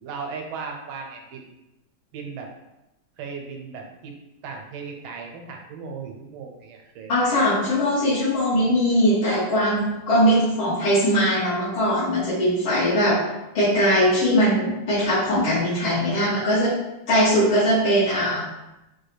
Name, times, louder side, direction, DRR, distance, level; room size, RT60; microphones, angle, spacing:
voice 1, 0.0-1.5 2.1-2.5 3.2-4.1 4.4-7.1, right 5 dB, 90° right, 2 dB, 1.5 m, -36 dB
voice 2, 7.1-13.2 13.5-16.7 17.1-18.5, equal, 80° left, -12 dB, 2.2 m, -20 dB
4.6 x 2.3 x 3.2 m, 0.93 s
omnidirectional pair, 2.2 m